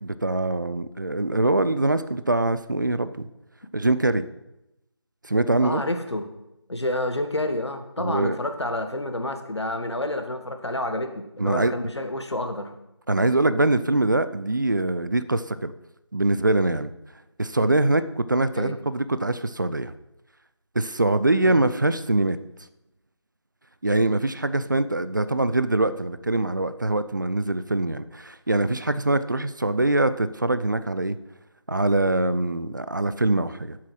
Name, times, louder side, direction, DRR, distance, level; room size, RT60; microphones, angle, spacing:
voice 1, 0.0-3.3 3.7-4.2 5.3-5.8 8.0-8.4 11.4-11.7 13.1-15.7 16.1-16.9 17.4-19.9 20.8-22.4 23.8-31.2 31.7-33.8, right 2 dB, 45° right, 13 dB, 0.5 m, -23 dB
voice 2, 5.6-6.3 6.7-12.7 18.6-18.8 21.4-21.6, left 1 dB, 70° left, 7 dB, 1.5 m, -29 dB
7.6 x 7.4 x 6.1 m, 0.91 s
figure-of-eight pair, 165°, 15 cm